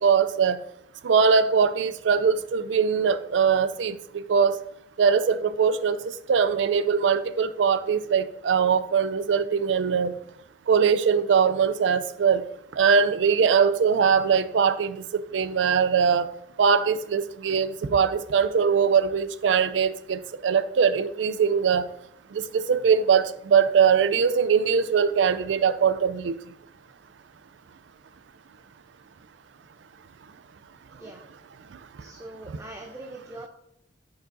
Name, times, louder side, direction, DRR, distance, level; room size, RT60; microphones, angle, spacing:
voice 1, 0.0-0.6 1.0-4.0 4.3-4.6 5.0-10.1 10.7-12.4 12.7-15.0 15.3-16.3 16.6-21.8 22.3-26.4, right 6 dB, 80° right, 13 dB, 0.4 m, -21 dB
voice 2, 32.0-33.5, right 2 dB, 15° right, 2 dB, 0.6 m, -42 dB
8.2 x 6.8 x 2.6 m, 0.78 s
head